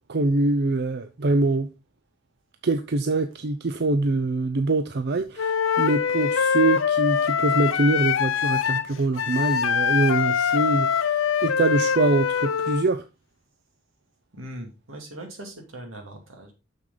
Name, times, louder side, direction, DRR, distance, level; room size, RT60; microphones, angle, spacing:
voice 1, 0.1-1.7 2.6-13.0, right 2 dB, 55° right, 0.6 m, -24 dB
Wind instrument woodwind instrument, 5.4-12.9, left 7 dB, 80° left, 0.6 m, -23 dB
voice 2, 14.3-16.5, right 1 dB, 85° right, 2.6 m, -40 dB
6.7 x 6.4 x 3.9 m
head